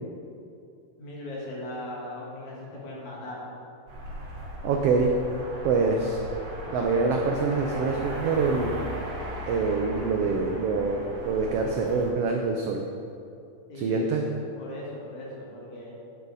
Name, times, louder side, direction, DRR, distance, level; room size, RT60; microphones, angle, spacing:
voice 1, 1.0-3.5 13.7-14.2 14.5-15.9, left 1 dB, 75° left, -5 dB, 3.2 m, -38 dB
sound 1, 3.9-12.1, equal, 50° right, 2.7 m, -37 dB
voice 2, 4.6-5.2 5.6-6.2 6.7-8.8 9.5-12.8 13.8-14.3, right 4 dB, 90° right, 2 dB, 1.3 m, -25 dB
10.5 x 6.3 x 4.0 m, 2.6 s
omnidirectional pair, 3.4 m